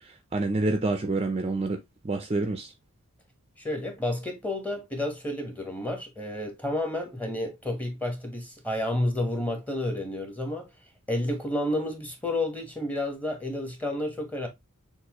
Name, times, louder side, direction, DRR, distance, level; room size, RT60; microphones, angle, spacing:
voice 1, 0.3-1.8 2.0-2.7, right 2 dB, 25° right, 0.5 m, -27 dB
voice 2, 3.6-10.7 11.1-14.5, left 1 dB, 5° left, 1.2 m, -30 dB
6.5 x 2.6 x 3.0 m
head